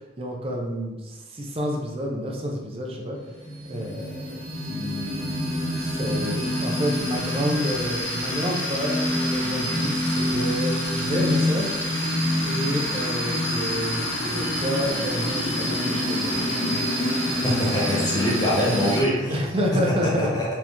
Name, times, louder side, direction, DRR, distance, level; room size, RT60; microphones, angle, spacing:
voice 1, 0.2-3.2 3.7-11.7 12.4-16.8 19.3-20.3, equal, 30° right, 0 dB, 0.7 m, -29 dB
sound 1, 3.2-19.0, equal, 90° left, 1.4 m, -26 dB
voice 2, 17.4-19.4 20.2-20.4, equal, 20° left, -7 dB, 1.3 m, -24 dB
4.5 x 3.0 x 3.5 m, 1.1 s
head